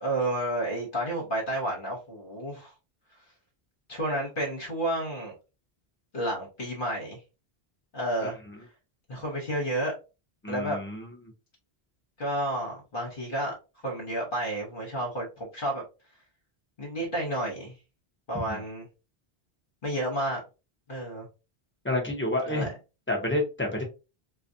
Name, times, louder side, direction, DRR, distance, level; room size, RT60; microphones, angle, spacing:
voice 1, 0.0-2.7 3.9-5.3 6.1-7.2 7.9-8.4 9.1-9.9 10.5-10.8 12.2-13.5 13.8-15.8 16.8-17.8 18.3-18.9 19.8-20.4 20.9-21.3 22.5-22.7, right 1 dB, 55° left, 1.3 m, -31 dB
voice 2, 10.4-11.1 18.3-18.6 21.8-22.7 23.1-23.8, left 1 dB, 10° left, 0.9 m, -29 dB
4.0 x 2.3 x 2.7 m
omnidirectional pair, 1.1 m